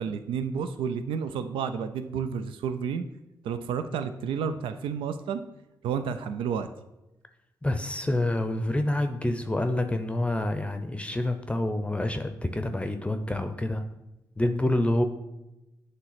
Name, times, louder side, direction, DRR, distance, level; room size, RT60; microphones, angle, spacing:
voice 1, 0.0-3.0 3.4-5.4 5.8-6.7, right 7 dB, 80° right, 10 dB, 0.4 m, -31 dB
voice 2, 7.6-13.8 14.4-15.0, left 1 dB, 15° left, 7 dB, 0.6 m, -27 dB
7.5 x 3.3 x 5.7 m, 0.96 s
supercardioid pair, 55°, 9 cm